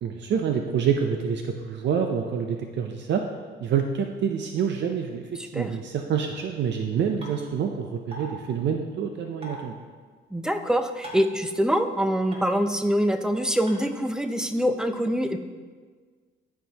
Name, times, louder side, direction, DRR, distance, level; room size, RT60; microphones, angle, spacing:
voice 1, 0.0-3.2 3.6-9.8, right 7 dB, 65° right, 4 dB, 0.6 m, -27 dB
voice 2, 5.4-5.8 10.3-15.4, equal, 5° right, 8 dB, 0.5 m, -25 dB
sound 1, 7.2-7.3 8.1-8.3 9.4-9.6 11.0-11.3 12.3-12.4 13.7-13.8, right 1 dB, 30° right, 2.0 m, -38 dB
12.5 x 4.5 x 2.9 m, 1.5 s
cardioid pair, 90°, 20 cm